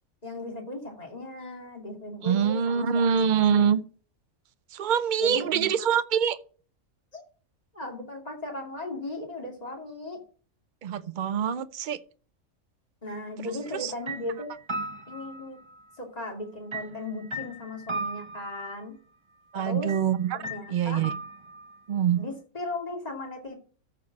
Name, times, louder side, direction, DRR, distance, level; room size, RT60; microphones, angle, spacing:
voice 1, 0.2-3.8 5.2-5.7 7.1-7.2 7.7-10.2 13.0-14.5 15.1-15.6 16.0-18.9 19.5-19.9 20.3-21.0 22.2-23.5, left 2 dB, 25° left, 2.5 m, -37 dB
voice 2, 2.2-3.8 4.7-6.4 10.8-12.0 13.8-13.9 19.5-20.4 20.7-21.1 21.9-22.2, right 8 dB, 65° right, 0.4 m, -24 dB
sound 1, 13.6-13.8 14.1-15.9 16.7-18.7 19.9-20.1 20.4-21.7, right 2 dB, 25° right, 1.0 m, -37 dB
13.5 x 4.6 x 5.8 m
omnidirectional pair, 1.5 m